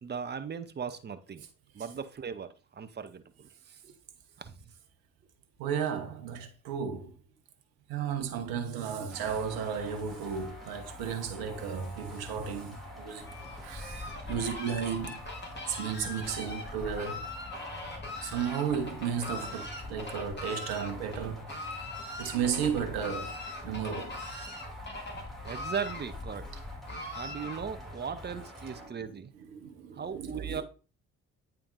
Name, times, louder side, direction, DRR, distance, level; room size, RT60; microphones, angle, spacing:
voice 1, 0.0-1.5 1.7-4.0 4.4-4.6 25.4-26.4 27.1-29.3 29.9-30.6, right 6 dB, 25° right, 0.8 m, -38 dB
voice 2, 5.6-7.1 7.9-13.3 13.6-15.2 15.7-17.3 18.2-21.5 22.2-24.2 28.8-30.6, right 7 dB, 65° right, 1.1 m, -34 dB
sound 1, 9.1-28.9, equal, ahead, 2.4 m, -46 dB
Fowl, 13.2-27.9, left 2 dB, 25° left, 2.2 m, -41 dB
8.7 x 4.5 x 2.5 m
figure-of-eight pair, 45°, 40 cm